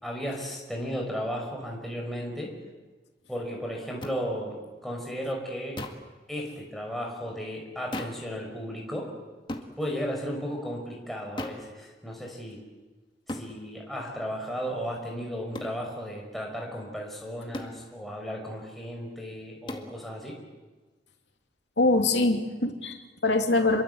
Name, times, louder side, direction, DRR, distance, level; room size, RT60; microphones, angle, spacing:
voice 1, 0.0-2.5 3.3-4.6 4.8-5.8 6.3-9.1 9.8-12.6 13.3-20.4, equal, ahead, -1 dB, 5.6 m, -34 dB
sound 1, 4.0-4.2 5.8-6.1 7.9-8.3 9.5-9.7 11.4-11.7 13.3-13.5 15.5-15.8 17.5-17.8 19.7-19.9, left 1 dB, 25° left, 2.1 m, -36 dB
voice 2, 21.8-23.8, left 2 dB, 85° left, 4 dB, 3.0 m, -24 dB
27.5 x 23.5 x 8.2 m, 1.3 s
head